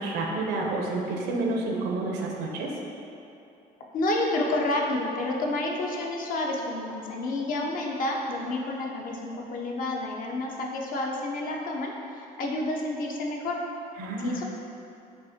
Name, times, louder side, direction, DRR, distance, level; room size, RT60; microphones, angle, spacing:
voice 1, 0.0-2.7 14.0-14.4, right 2 dB, 80° right, 0 dB, 0.6 m, -29 dB
voice 2, 3.9-13.6 14.2-14.4, left 2 dB, 55° left, -1 dB, 0.6 m, -29 dB
5.6 x 2.4 x 2.8 m, 2.8 s
cardioid pair, 110°, 17 cm